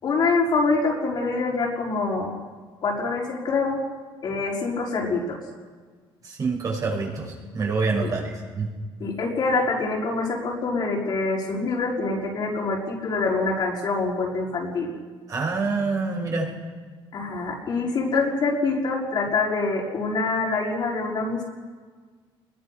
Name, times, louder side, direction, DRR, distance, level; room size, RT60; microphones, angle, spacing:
voice 1, 0.0-2.4 2.8-3.8 4.2-5.4 8.0-8.1 9.0-14.9 17.1-21.4, left 3 dB, 50° left, -3 dB, 5.4 m, -25 dB
voice 2, 6.2-8.7 15.3-16.5, right 4 dB, 40° right, 0 dB, 6.0 m, -26 dB
24.5 x 22.0 x 6.1 m, 1.5 s
cardioid pair, 120°, 9 cm